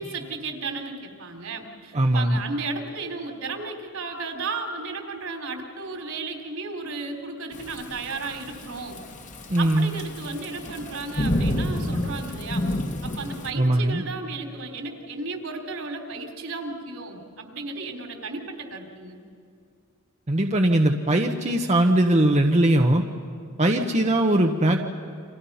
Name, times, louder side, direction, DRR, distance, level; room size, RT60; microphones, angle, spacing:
voice 1, 0.0-9.0 9.6-12.7 13.0-19.2, right 3 dB, 75° right, 3 dB, 3.8 m, -34 dB
voice 2, 1.9-2.4 9.5-9.9 13.5-14.0 20.3-23.0 23.6-24.9, right 1 dB, 30° right, 3 dB, 1.1 m, -20 dB
Thunderstorm / Rain, 7.5-13.5, left 1 dB, 35° left, 1.8 m, -29 dB
30.0 x 26.0 x 5.7 m, 2.3 s
head